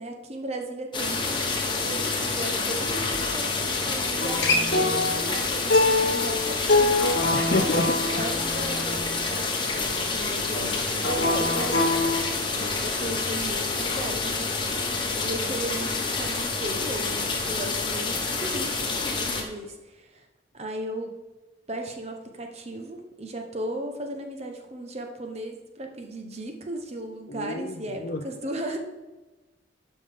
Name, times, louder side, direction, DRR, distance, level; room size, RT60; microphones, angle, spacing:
voice 1, 0.0-1.5 1.8-7.5 8.1-12.0 12.5-14.9 15.2-20.3 20.5-21.2 21.7-28.8, right 1 dB, 35° right, 4 dB, 1.0 m, -36 dB
sound 1, 0.9-19.4, left 4 dB, 25° left, 1.2 m, -28 dB
Acoustic guitar, 4.2-9.4 11.0-12.2, left 2 dB, 75° left, 1.2 m, -24 dB
voice 2, 7.3-8.2 27.3-28.2, left 2 dB, 55° left, 2 dB, 0.6 m, -29 dB
11.5 x 5.3 x 3.7 m, 1.2 s
head